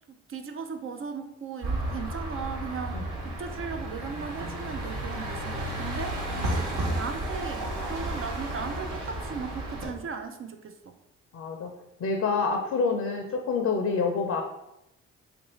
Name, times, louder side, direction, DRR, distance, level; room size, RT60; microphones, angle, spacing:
voice 1, 0.1-6.5 7.0-11.0, right 5 dB, 45° right, 7 dB, 0.4 m, -37 dB
sound 1, 1.6-9.9, right 1 dB, 70° right, 1.1 m, -32 dB
voice 2, 6.3-6.7 11.3-11.7 12.0-14.4, left 4 dB, 60° left, 2 dB, 0.6 m, -27 dB
2.8 x 2.6 x 4.2 m, 0.87 s
supercardioid pair, 60°, 31 cm